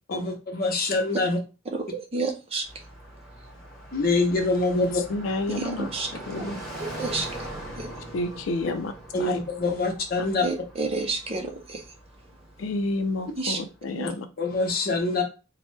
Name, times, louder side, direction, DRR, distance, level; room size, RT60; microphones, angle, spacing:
voice 1, 0.1-1.4 3.9-5.0 9.1-10.4 14.4-15.2, left 3 dB, 50° left, 0.8 m, -25 dB
voice 2, 1.7-2.7 5.5-6.1 6.8-7.3 7.8-7.9 10.4-11.8 13.4-13.6 13.9-14.1, right 3 dB, 30° right, 0.5 m, -30 dB
Car passing by, 2.6-13.7, right 1 dB, ahead, 1.1 m, -42 dB
voice 3, 4.7-5.9 6.3-6.5 8.1-8.9 9.2-9.4 12.6-14.3, left 2 dB, 85° left, 0.4 m, -30 dB
2.8 x 2.1 x 3.3 m
head